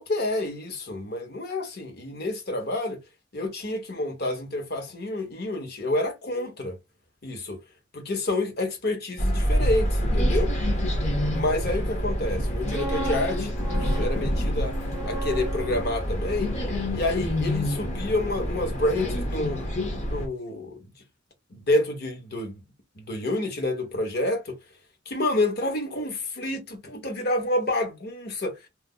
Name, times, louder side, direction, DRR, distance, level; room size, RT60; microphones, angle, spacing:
voice 1, 0.0-3.0 3.3-6.8 7.2-7.6 7.9-10.5 11.3-14.7 15.1-16.5 16.9-20.8 21.5-22.6 23.0-24.6 25.1-28.5, left 1 dB, 50° left, 1.1 m, -28 dB
sound 1, 9.2-20.3, equal, 35° left, 0.8 m, -27 dB
sound 2, 12.4-18.3 18.6-18.9, right 2 dB, 80° left, 1.7 m, -37 dB
2.8 x 2.0 x 3.6 m
head